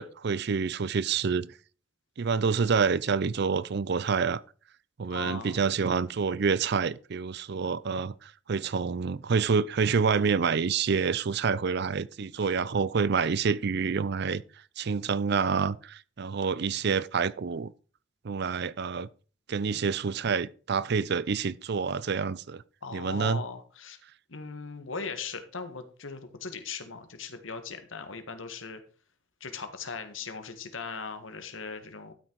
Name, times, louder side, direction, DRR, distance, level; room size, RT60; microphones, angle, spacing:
voice 1, 0.0-1.5 2.2-4.4 5.0-14.4 14.8-17.7 18.2-19.1 19.5-22.6 22.9-23.4, right 5 dB, 55° right, 0.5 m, -27 dB
voice 2, 5.1-5.6 22.8-24.0 24.3-28.8 29.4-32.1, left 4 dB, 85° left, 1.6 m, -39 dB
12.5 x 6.2 x 4.6 m
head